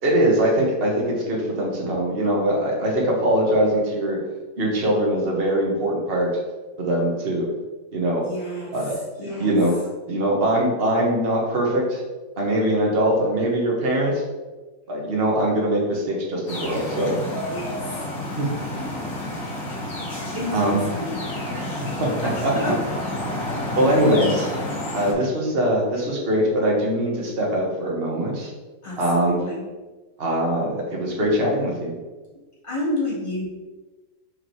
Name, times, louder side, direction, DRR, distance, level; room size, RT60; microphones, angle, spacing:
voice 1, 0.0-4.2 4.6-6.3 6.8-7.5 7.9-8.2 8.7-8.9 9.2-9.7 10.1-12.0 12.4-14.2 14.9-17.1 18.4-18.5 20.5-20.8 21.4-21.7 22.0-22.7 23.7-24.5 24.9-28.5 29.0-29.4 30.2-31.9, right 1 dB, 30° right, -2 dB, 1.3 m, -22 dB
voice 2, 8.2-9.5 17.5-18.1 20.3-21.2 22.2-22.8 28.8-29.6 32.6-33.4, left 1 dB, 15° left, -6 dB, 1.8 m, -30 dB
sound 1, 16.5-25.1, left 1 dB, 45° left, 1.5 m, -30 dB
4.9 x 4.7 x 4.6 m, 1.2 s
omnidirectional pair, 2.3 m